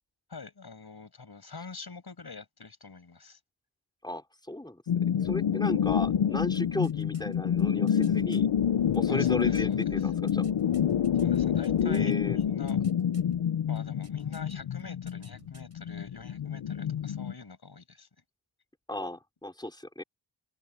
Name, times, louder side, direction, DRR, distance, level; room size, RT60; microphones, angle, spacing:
voice 1, 0.3-3.4 9.1-10.1 11.2-12.8 13.7-18.1, left 4 dB, 50° left, 6.7 m, -45 dB
voice 2, 4.0-8.5 8.9-10.5 11.8-12.4 18.9-20.0, left 1 dB, 10° left, 4.7 m, -35 dB
sound 1, 4.9-17.3, left 9 dB, 80° left, 0.9 m, -27 dB
sound 2, 6.5-8.4 8.9-12.1 12.4-13.3 13.8-14.5 14.8-15.7 16.0-16.1, right 2 dB, 30° right, 7.7 m, -56 dB
open air
wide cardioid pair, 75°, 47 cm